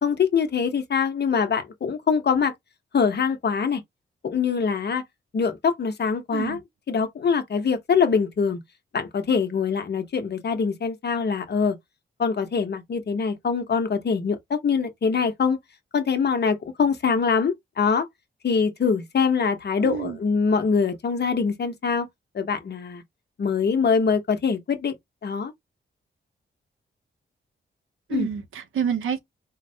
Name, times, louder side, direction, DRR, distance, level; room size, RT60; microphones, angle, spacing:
voice 1, 0.0-2.5 2.9-3.8 4.2-5.0 5.3-6.6 6.9-8.6 8.9-11.8 12.2-15.6 15.9-18.1 18.4-22.1 22.3-23.0 23.4-24.9 25.2-25.5 28.1-28.3, left 5 dB, 55° left, 0.9 m, -23 dB
voice 2, 19.8-20.2 28.1-29.2, right 8 dB, 90° right, 0.7 m, -28 dB
3.8 x 2.1 x 2.7 m
wide cardioid pair, 95°, 20 cm